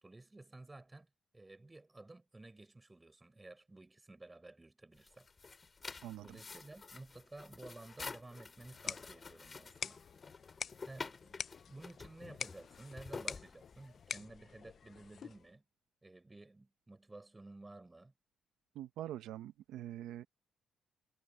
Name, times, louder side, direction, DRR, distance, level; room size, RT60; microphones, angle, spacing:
voice 1, 0.0-5.3 6.2-10.0 10.9-15.6 16.0-18.1, right 2 dB, 15° right, 4.6 m, -54 dB
sound 1, 4.9-14.1, left 4 dB, 30° left, 3.8 m, -49 dB
sound 2, 8.6-15.5, left 7 dB, 55° left, 0.6 m, -47 dB
voice 2, 18.7-20.2, right 12 dB, 85° right, 0.9 m, -44 dB
cardioid pair, 90°, 0 cm